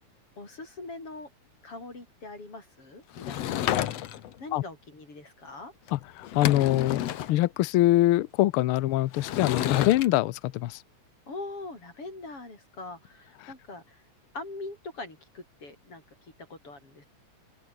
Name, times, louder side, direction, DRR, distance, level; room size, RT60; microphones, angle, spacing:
voice 1, 0.4-1.3 1.6-5.7 11.3-14.0 14.3-17.1, left 3 dB, 50° left, 8.0 m, -42 dB
Sliding door / Wood, 3.1-4.4 5.9-6.0 6.2-7.3 9.1-10.1, left 12 dB, 65° left, 2.2 m, -30 dB
voice 2, 5.9-10.8, left 15 dB, 90° left, 1.2 m, -24 dB
open air
omnidirectional pair, 3.3 m